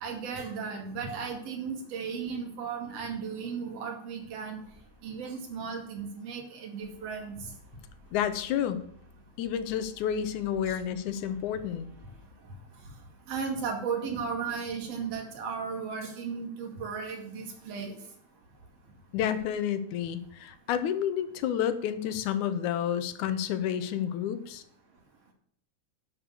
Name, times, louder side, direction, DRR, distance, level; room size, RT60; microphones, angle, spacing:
voice 1, 0.0-4.6 5.0-7.4 10.7-10.8 13.3-17.9, right 5 dB, 55° right, 2 dB, 3.2 m, -35 dB
sound 1, 4.6-5.4 6.8-12.3, left 4 dB, 30° right, 5.3 m, -56 dB
voice 2, 8.1-8.8 9.4-11.9 19.1-24.6, left 9 dB, 80° left, 11 dB, 2.3 m, -30 dB
11.0 x 6.6 x 6.7 m, 0.68 s
omnidirectional pair, 3.5 m